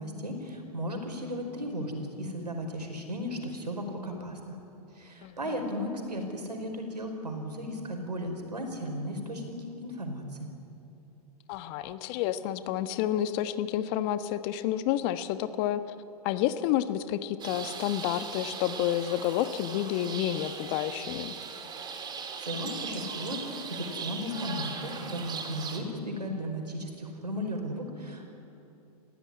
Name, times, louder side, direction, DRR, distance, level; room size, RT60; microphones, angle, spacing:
voice 1, 0.0-4.6 4.9-10.5 22.4-28.3, equal, 85° right, 4 dB, 4.8 m, -35 dB
voice 2, 5.2-5.6 11.5-15.8 16.2-21.3, left 12 dB, 40° left, 12 dB, 1.2 m, -30 dB
sound 1, 17.4-25.8, right 5 dB, 20° right, 2.9 m, -39 dB
29.0 x 16.0 x 9.8 m, 2.9 s
figure-of-eight pair, 105°, 20 cm